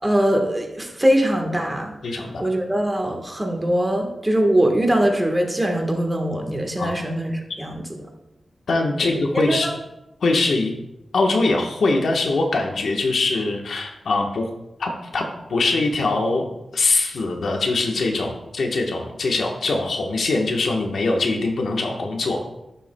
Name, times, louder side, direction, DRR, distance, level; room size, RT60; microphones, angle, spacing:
voice 1, 0.0-1.9 2.4-7.7 9.5-9.7, right 1 dB, 15° right, 2 dB, 1.3 m, -21 dB
voice 2, 2.0-2.5 6.8-7.0 8.7-9.7 10.2-10.7 11.1-14.5 14.8-16.5 16.7-22.4, left 3 dB, 80° left, 2 dB, 1.1 m, -22 dB
11.0 x 6.9 x 2.2 m, 0.91 s
wide cardioid pair, 95°, 0 cm